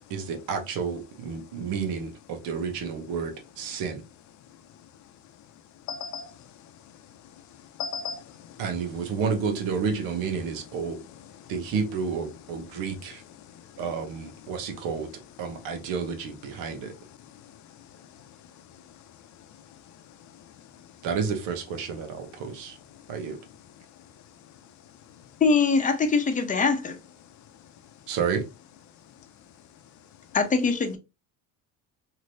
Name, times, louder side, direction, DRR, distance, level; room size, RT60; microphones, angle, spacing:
voice 1, 0.0-4.0 8.6-11.0 11.5-13.2 13.8-15.1 15.4-16.9 21.0-22.8 23.1-23.4 28.1-28.4, right 5 dB, 75° right, 1.0 m, -30 dB
voice 2, 5.9-6.8 7.1-8.6 11.4-11.5 13.4-13.8 17.3-20.9 23.0-23.1 25.1-25.2 27.6-27.7, left 6 dB, 55° left, 0.6 m, -42 dB
voice 3, 25.4-27.0 30.3-31.0, left 4 dB, 20° left, 0.8 m, -22 dB
3.2 x 2.8 x 2.7 m
cardioid pair, 110°, 35 cm